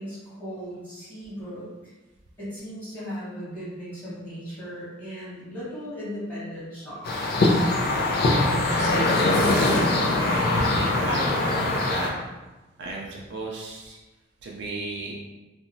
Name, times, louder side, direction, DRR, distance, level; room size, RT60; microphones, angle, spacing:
voice 1, 0.0-1.9 2.4-7.4, equal, 10° left, -12 dB, 1.4 m, -37 dB
sound 1, 7.0-12.1, left 2 dB, 50° left, 0.4 m, -22 dB
voice 2, 8.8-12.1 12.8-14.0 14.4-15.1, right 2 dB, 60° right, -1 dB, 0.4 m, -35 dB
2.8 x 2.2 x 2.6 m, 1.1 s
head